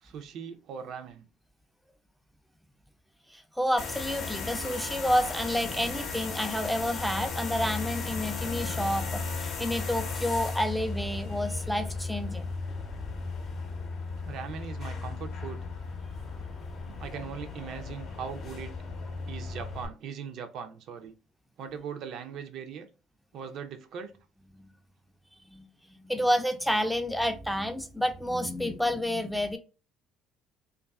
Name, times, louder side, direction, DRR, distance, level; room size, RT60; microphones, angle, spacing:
voice 1, 0.0-1.3 14.2-15.6 16.8-18.7 19.3-21.1 21.6-22.9 23.3-24.1, right 7 dB, 65° right, 0.4 m, -40 dB
voice 2, 3.3-12.5 24.6-24.7 25.5-29.6, equal, ahead, 0.4 m, -29 dB
sound 1, 3.8-19.9, left 4 dB, 60° left, 0.6 m, -35 dB
2.5 x 2.3 x 2.3 m
supercardioid pair, 70°, 0 cm